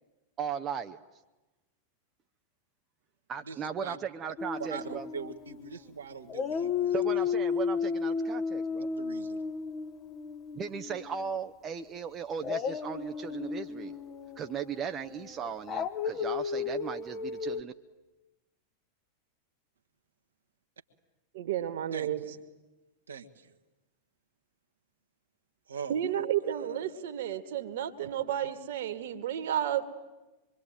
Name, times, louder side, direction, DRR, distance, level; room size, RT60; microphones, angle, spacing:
voice 1, 0.4-1.0 3.3-5.1 6.9-8.9 10.5-14.0 14.4-17.7, right 7 dB, 25° right, 7 dB, 0.9 m, -37 dB
voice 2, 3.4-4.0 4.6-7.3 9.0-9.4 21.9-22.3 23.1-23.6 25.7-25.9 26.4-26.8, right 6 dB, 70° right, 5 dB, 1.5 m, -42 dB
Dog, 4.4-5.9 6.3-11.4 12.4-17.6, left 6 dB, 30° left, 1.5 m, -34 dB
voice 3, 21.3-22.2 25.9-29.9, right 10 dB, 55° right, 10 dB, 1.9 m, -32 dB
25.0 x 23.5 x 9.1 m, 1.1 s
figure-of-eight pair, 90°, 0 cm